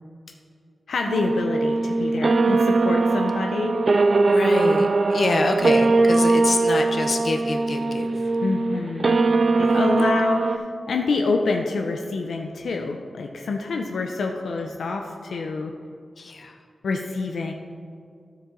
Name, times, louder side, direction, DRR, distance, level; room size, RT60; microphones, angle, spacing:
voice 1, 0.9-3.8 8.4-9.2 9.6-15.7 16.8-17.5, left 3 dB, 80° left, 2 dB, 0.5 m, -27 dB
sound 1, 1.1-10.6, right 3 dB, 45° right, 0.3 m, -21 dB
voice 2, 4.3-8.1 9.5-10.1 14.6-14.7 16.2-16.6, left 3 dB, 55° left, 4 dB, 0.8 m, -27 dB
12.5 x 4.8 x 3.9 m, 2.3 s
wide cardioid pair, 115°, 0 cm